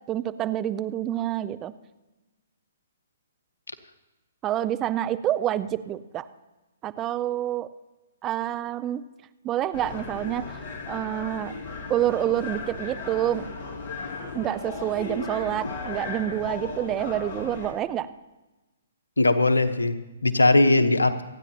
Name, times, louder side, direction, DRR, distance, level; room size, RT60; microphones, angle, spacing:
voice 1, 0.1-1.7 4.4-6.2 6.8-7.7 8.2-9.0 9.4-10.4 10.9-11.5 11.9-13.5 14.3-18.1, right 12 dB, 25° right, 14 dB, 0.5 m, -27 dB
sound 1, 9.7-17.7, left 3 dB, 45° left, 2.6 m, -36 dB
voice 2, 19.2-21.2, left 2 dB, 85° left, 11 dB, 1.0 m, -20 dB
28.0 x 9.8 x 2.9 m, 1.1 s
figure-of-eight pair, 130°, 0 cm